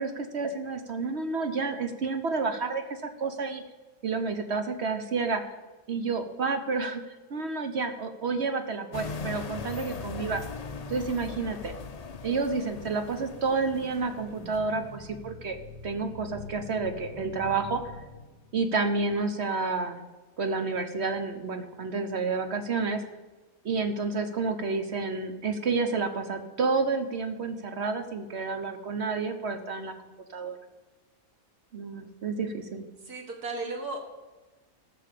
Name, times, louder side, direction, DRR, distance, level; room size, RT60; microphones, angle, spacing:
voice 1, 0.0-3.6 4.0-5.4 5.9-10.4 10.9-11.7 12.2-15.6 15.8-17.8 18.5-20.0 20.4-23.0 23.6-29.9 30.3-30.6 31.7-32.9, right 4 dB, 50° right, 7 dB, 1.1 m, -30 dB
sound 1, 8.9-15.2, left 4 dB, 45° left, 0.5 m, -40 dB
sound 2, 12.3-18.7, left 2 dB, 25° left, 1.6 m, -46 dB
voice 2, 33.0-34.0, right 3 dB, 90° right, 2 dB, 2.3 m, -35 dB
14.0 x 6.2 x 6.7 m, 1.2 s
omnidirectional pair, 1.6 m